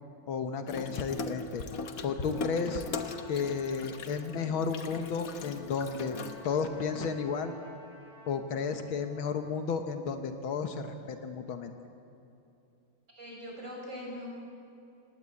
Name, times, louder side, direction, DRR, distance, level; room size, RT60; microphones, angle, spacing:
voice 1, 0.3-1.6 2.0-2.8 3.3-6.2 6.4-7.5 8.3-11.7, left 5 dB, 80° left, 7 dB, 2.0 m, -33 dB
Water tap faucet / Sink (filling or washing), 0.7-6.8, left 4 dB, 50° left, 1.4 m, -40 dB
Trumpet, 2.2-9.5, left 1 dB, ahead, 7.5 m, -55 dB
voice 2, 13.2-14.3, equal, 35° right, -2 dB, 6.9 m, -41 dB
27.0 x 18.5 x 8.4 m, 2.7 s
omnidirectional pair, 2.2 m